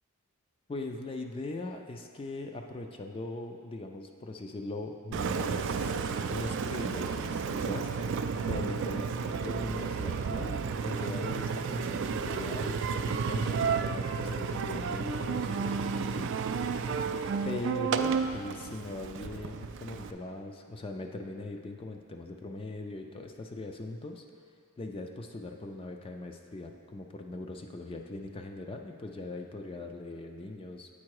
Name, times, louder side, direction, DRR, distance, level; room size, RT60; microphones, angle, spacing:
voice 1, 0.7-6.0 6.3-9.1 9.4-16.4 16.8-16.9 17.4-24.2 24.8-30.9, left 2 dB, 25° left, 4 dB, 0.3 m, -40 dB
Engine, 5.1-20.1, right 5 dB, 55° right, 0.3 m, -32 dB
8.6 x 4.5 x 4.7 m, 2.2 s
head